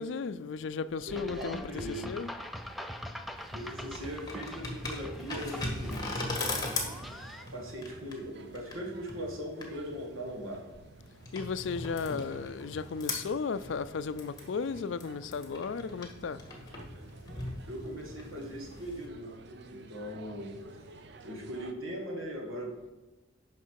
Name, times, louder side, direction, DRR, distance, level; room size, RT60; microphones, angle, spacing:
voice 1, 0.0-2.3 11.3-16.4, left 5 dB, 65° left, 0.4 m, -35 dB
sound 1, 1.1-7.4, equal, ahead, 0.4 m, -43 dB
voice 2, 1.1-2.2 3.5-6.2 7.5-10.6 17.7-19.4 19.7-20.6 21.2-22.8, equal, 85° right, 1.9 m, -39 dB
sound 2, 3.4-19.1, left 2 dB, 20° left, 1.5 m, -40 dB
sound 3, 5.9-21.7, right 3 dB, 55° right, 0.5 m, -53 dB
9.9 x 5.9 x 4.7 m
head